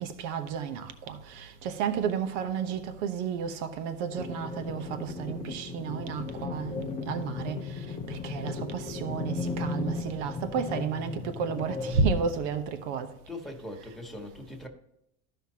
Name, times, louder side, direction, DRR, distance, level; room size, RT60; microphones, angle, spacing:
voice 1, 0.0-13.1, right 6 dB, 80° right, 1.1 m, -32 dB
sound 1, 4.2-12.9, left 4 dB, 15° left, 0.6 m, -36 dB
voice 2, 13.3-14.7, left 1 dB, ahead, 1.5 m, -41 dB
13.0 x 5.7 x 2.8 m
cardioid pair, 135°, 35 cm